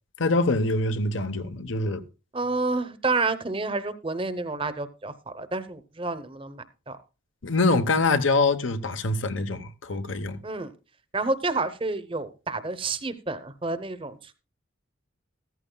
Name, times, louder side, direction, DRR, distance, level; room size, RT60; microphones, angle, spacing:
voice 1, 0.2-2.0 7.4-10.4, left 3 dB, 70° left, 1.0 m, -24 dB
voice 2, 2.3-7.0 10.4-10.7 11.1-14.3, right 3 dB, 25° right, 0.8 m, -29 dB
14.5 x 14.0 x 2.3 m
head